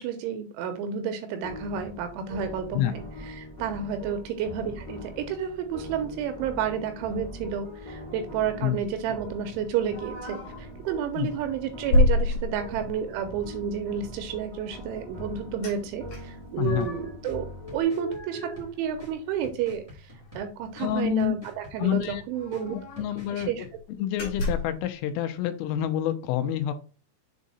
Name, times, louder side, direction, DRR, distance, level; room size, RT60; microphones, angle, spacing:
voice 1, 0.0-22.8 23.3-23.7, right 7 dB, 80° right, 7 dB, 2.9 m, -31 dB
sound 1, 1.4-17.8, equal, 25° left, 0.4 m, -42 dB
sound 2, 9.9-10.6 11.1-11.3 11.9-13.0 15.6-15.8 16.1-17.1 17.6-19.4 19.7-19.8 20.1-20.3 21.4-21.5 21.8-21.9 22.3-23.2 23.6-23.8 24.2-24.8, left 2 dB, 50° left, 3.0 m, -28 dB
voice 2, 16.6-16.9 20.8-21.3 21.8-22.2 22.7-23.5 24.0-26.7, left 11 dB, 85° left, 8 dB, 3.2 m, -27 dB
sound 3, 16.8-23.8, left 1 dB, 45° right, 0.4 m, -49 dB
7.3 x 3.8 x 4.1 m, 0.35 s
omnidirectional pair, 5.9 m